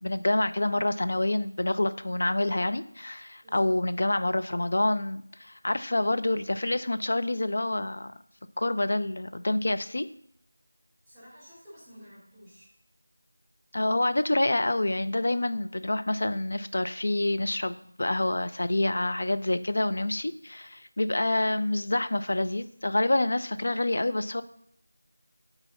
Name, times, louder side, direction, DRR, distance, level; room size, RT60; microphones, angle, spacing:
voice 1, 0.0-8.1 8.6-10.1 13.7-24.4, left 1 dB, 55° left, 10 dB, 0.5 m, -27 dB
voice 2, 11.0-12.7, equal, 5° right, -12 dB, 4.2 m, -51 dB
9.3 x 4.1 x 7.0 m, 0.68 s
figure-of-eight pair, 170°, 0 cm